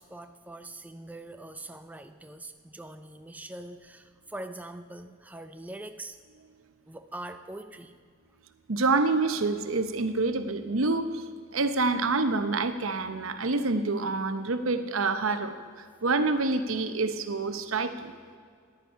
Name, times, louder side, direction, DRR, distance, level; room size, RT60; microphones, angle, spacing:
voice 1, 0.0-6.2 6.9-8.0, right 1 dB, 10° right, 7 dB, 0.4 m, -43 dB
voice 2, 8.7-11.2 11.5-15.5 16.0-18.1, right 3 dB, 80° right, 9 dB, 0.8 m, -27 dB
13.5 x 10.5 x 5.6 m, 2.1 s
head